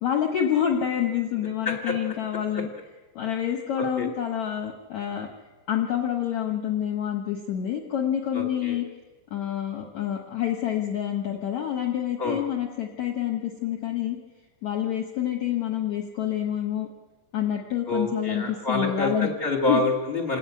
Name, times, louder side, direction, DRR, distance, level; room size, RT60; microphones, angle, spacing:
voice 1, 0.0-2.7 3.1-5.3 5.7-8.8 9.3-14.2 14.6-16.9 17.3-19.3 19.7-19.8, left 10 dB, 70° left, 1 dB, 1.7 m, -27 dB
voice 2, 8.3-8.8 12.2-12.4 17.8-20.4, left 2 dB, 30° left, -1 dB, 1.0 m, -27 dB
28.0 x 9.9 x 9.7 m, 1.2 s
omnidirectional pair, 5.5 m